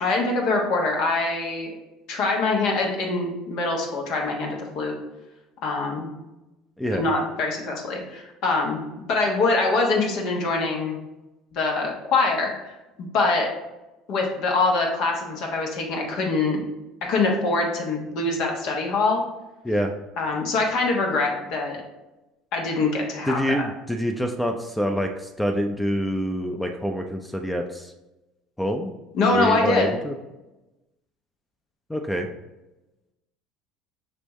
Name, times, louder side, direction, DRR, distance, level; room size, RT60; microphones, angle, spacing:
voice 1, 0.0-1.7 2.1-4.9 5.6-6.1 6.9-8.8 9.1-11.0 11.5-12.7 13.0-13.5 14.1-16.6 17.0-19.2 20.2-21.8 22.5-23.7 29.1-29.9, left 3 dB, 65° left, 0 dB, 1.2 m, -24 dB
voice 2, 6.8-7.1 19.6-19.9 23.3-25.1 25.4-27.9 28.6-28.9 29.3-30.1 31.9-32.3, equal, 5° left, 5 dB, 0.5 m, -26 dB
5.2 x 3.3 x 3.1 m, 1.0 s
hypercardioid pair, 75°, 0 cm